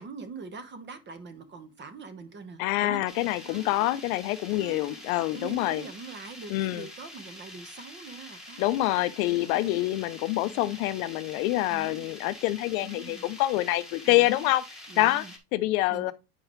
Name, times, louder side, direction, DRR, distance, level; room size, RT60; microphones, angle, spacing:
voice 1, 0.0-3.0 3.4-4.0 4.6-5.0 5.3-8.7 9.2-9.8 10.4-10.8 11.7-12.1 12.8-13.3 14.0-14.5 14.9-15.3 15.9-16.1, right 4 dB, 25° right, 1.1 m, -44 dB
voice 2, 2.6-5.8 6.5-6.9 8.6-14.6 15.0-15.2 15.5-16.1, left 17 dB, 70° left, 0.7 m, -26 dB
sound 1, 3.1-15.4, left 1 dB, ahead, 1.6 m, -46 dB
8.6 x 4.8 x 3.1 m
supercardioid pair, 130°, 45 cm